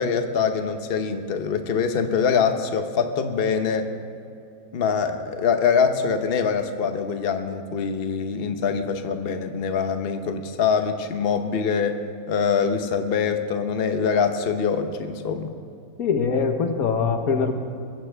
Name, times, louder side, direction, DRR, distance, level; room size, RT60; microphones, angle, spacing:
voice 1, 0.0-3.9 4.7-12.0 12.3-15.5, left 6 dB, 45° left, 7 dB, 1.0 m, -24 dB
voice 2, 16.0-17.5, left 5 dB, 90° left, 6 dB, 1.6 m, -22 dB
21.5 x 15.5 x 3.5 m, 2.6 s
omnidirectional pair, 1.5 m